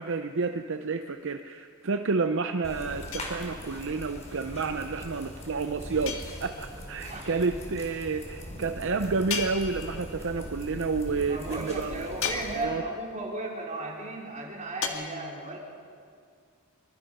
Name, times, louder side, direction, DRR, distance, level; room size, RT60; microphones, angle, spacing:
voice 1, 0.0-12.1 12.6-12.8, right 4 dB, 60° right, 7 dB, 0.7 m, -30 dB
sound 1, 2.6-12.7, equal, 30° left, 4.5 m, -41 dB
sound 2, 3.1-3.9 6.1-6.8 9.3-10.2 12.2-13.0 14.8-14.9, left 6 dB, 65° left, 2.0 m, -35 dB
voice 2, 11.3-15.6, right 2 dB, 35° right, -2 dB, 4.3 m, -35 dB
24.0 x 24.0 x 5.5 m, 2.2 s
head